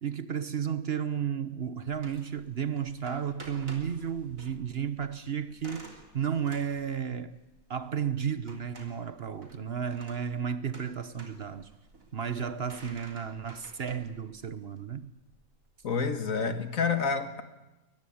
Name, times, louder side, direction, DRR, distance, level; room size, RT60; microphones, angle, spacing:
voice 1, 0.0-7.4 7.7-11.7 12.1-15.1, right 8 dB, 50° right, 1.1 m, -33 dB
sound 1, 1.9-16.4, right 2 dB, 70° right, 3.9 m, -53 dB
voice 2, 15.8-17.4, left 5 dB, 70° left, 2.1 m, -28 dB
22.5 x 19.5 x 8.6 m
omnidirectional pair, 1.5 m